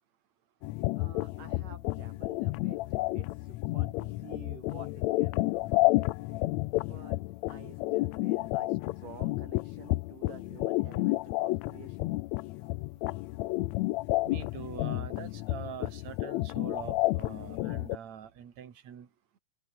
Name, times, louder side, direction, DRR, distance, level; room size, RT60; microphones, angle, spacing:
sound 1, 0.6-18.0, left 19 dB, 80° left, 1.6 m, -31 dB
voice 1, 1.0-6.1 6.9-7.2 7.5-12.1, right 5 dB, 90° right, 6.0 m, -51 dB
voice 2, 14.2-19.1, right 8 dB, 60° right, 3.6 m, -44 dB
open air
omnidirectional pair, 3.6 m